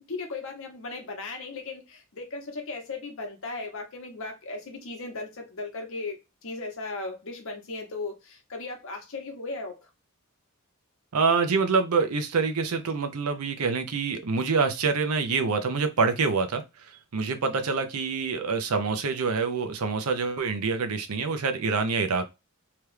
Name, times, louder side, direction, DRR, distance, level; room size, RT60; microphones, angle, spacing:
voice 1, 0.1-9.9, left 3 dB, 65° left, 0.9 m, -37 dB
voice 2, 11.1-16.6 17.1-22.3, right 4 dB, 80° right, 0.6 m, -26 dB
2.9 x 2.3 x 3.2 m
head